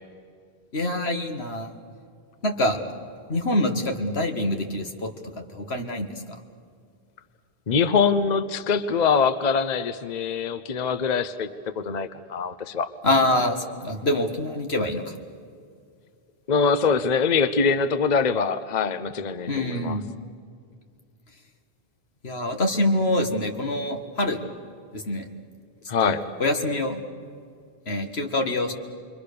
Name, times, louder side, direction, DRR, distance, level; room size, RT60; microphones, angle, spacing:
voice 1, 0.7-1.7 2.4-2.8 3.3-5.1 5.5-6.1 13.0-15.1 19.5-20.0 22.2-24.4 24.9-25.3 26.0-26.1 26.4-27.0 27.9-28.7, left 1 dB, 85° left, 4 dB, 2.1 m, -25 dB
voice 2, 7.7-11.5 11.8-12.9 16.5-20.0 25.9-26.2, left 5 dB, 45° left, 12 dB, 0.8 m, -23 dB
28.5 x 23.0 x 6.8 m, 2.2 s
omnidirectional pair, 1.0 m